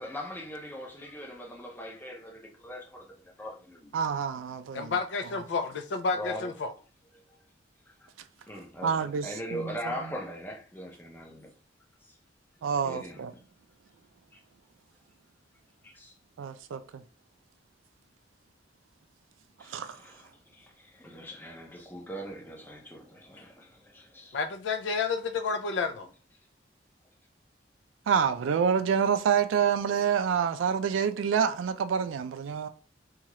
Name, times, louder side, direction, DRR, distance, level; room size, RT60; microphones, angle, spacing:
voice 1, 0.0-4.0 6.1-6.5 7.3-7.4 8.0-8.1 8.4-11.5 12.0-12.2 12.8-13.4 14.3-14.4 15.8-16.1 19.6-24.4, equal, 10° left, 0.6 m, -41 dB
voice 2, 3.9-4.9 8.8-9.7 12.6-13.3 16.4-16.8 19.7-20.0 28.1-32.7, right 7 dB, 90° right, 0.3 m, -27 dB
voice 3, 4.7-6.7 24.3-26.1, left 4 dB, 65° left, 0.4 m, -30 dB
2.8 x 2.3 x 3.0 m
head